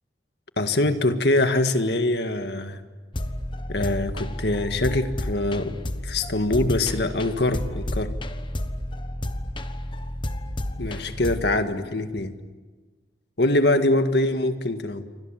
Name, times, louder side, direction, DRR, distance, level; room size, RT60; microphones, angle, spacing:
voice 1, 0.6-2.8 3.7-5.8 6.0-8.1 10.8-12.3 13.4-15.0, left 2 dB, 65° left, 8 dB, 1.8 m, -23 dB
sound 1, 3.1-11.5, left 1 dB, 25° left, 1.3 m, -31 dB
29.0 x 25.0 x 7.6 m, 1.4 s
head